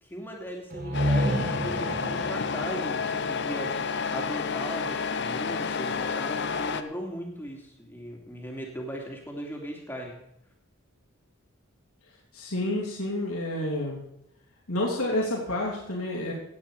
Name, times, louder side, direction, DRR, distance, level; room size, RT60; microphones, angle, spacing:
voice 1, 0.0-10.2, equal, 10° left, 0 dB, 2.7 m, -38 dB
sound 1, 0.7-4.4, equal, 40° right, 1.2 m, -31 dB
Truck, 0.9-6.8, left 5 dB, 50° left, 0.7 m, -30 dB
voice 2, 12.3-14.0 14.7-16.3, left 1 dB, 85° left, -4 dB, 3.2 m, -29 dB
17.0 x 9.2 x 4.9 m, 0.79 s
head